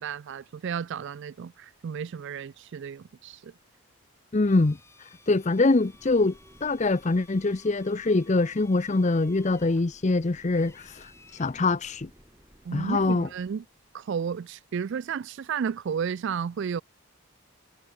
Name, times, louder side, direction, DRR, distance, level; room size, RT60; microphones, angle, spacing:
voice 1, 0.0-3.5 12.7-13.6 13.9-16.8, right 7 dB, 55° right, 0.3 m, -32 dB
voice 2, 4.3-12.1 12.7-13.3, left 3 dB, 30° left, 0.5 m, -24 dB
Drill, 4.4-11.6, left 3 dB, 10° left, 5.3 m, -57 dB
sound 1, 4.5-14.0, equal, 15° right, 4.4 m, -58 dB
head